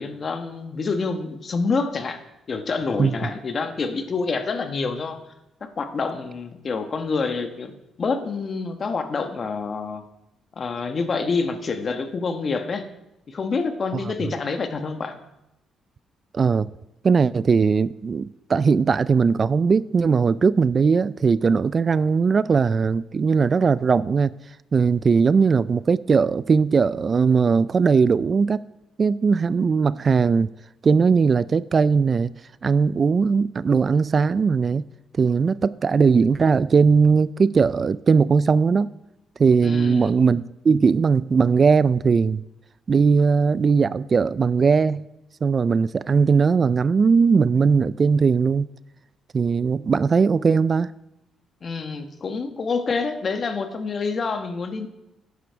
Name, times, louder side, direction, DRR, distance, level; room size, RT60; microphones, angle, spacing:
voice 1, 0.0-2.2 2.5-5.2 5.6-10.0 10.6-12.8 13.3-15.2 39.6-40.1 51.6-54.9, left 4 dB, 45° left, 1.2 m, -27 dB
voice 2, 16.3-16.7 17.0-24.3 24.7-28.6 29.0-30.5 30.8-32.3 32.6-34.9 35.2-38.9 39.4-42.4 42.9-45.1 45.4-48.7 49.3-50.9, right 5 dB, 40° right, 0.3 m, -19 dB
12.0 x 9.9 x 4.6 m
cardioid pair, 90°, 0 cm